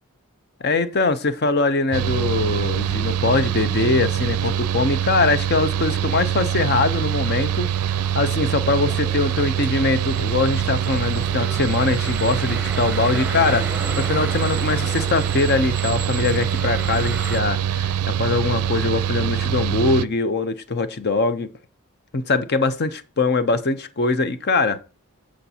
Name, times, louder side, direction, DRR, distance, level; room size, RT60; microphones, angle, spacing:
voice 1, 0.6-17.9 18.2-21.5 22.1-24.8, left 3 dB, 45° left, 0.7 m, -22 dB
Mechanical fan, 1.9-20.0, right 9 dB, 80° right, 0.4 m, -24 dB
sound 1, 6.5-17.4, right 2 dB, 10° right, 1.0 m, -35 dB
15.0 x 5.1 x 2.8 m
head